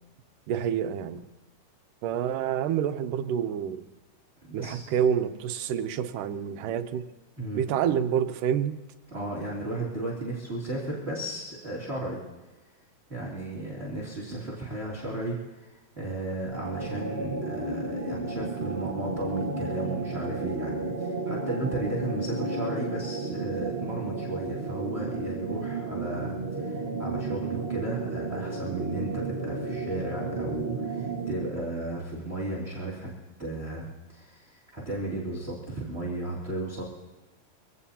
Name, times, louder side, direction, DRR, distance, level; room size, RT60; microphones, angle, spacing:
voice 1, 0.5-1.2 2.0-3.8 4.5-7.0 7.6-8.8, right 9 dB, 80° right, 9 dB, 2.4 m, -28 dB
voice 2, 4.4-4.9 7.4-7.6 9.1-12.2 13.1-33.1 33.4-36.8, right 1 dB, 20° right, -4 dB, 2.9 m, -34 dB
sound 1, 16.5-31.6, right 3 dB, 45° right, 0.8 m, -33 dB
25.0 x 17.5 x 2.8 m, 1.1 s
omnidirectional pair, 3.7 m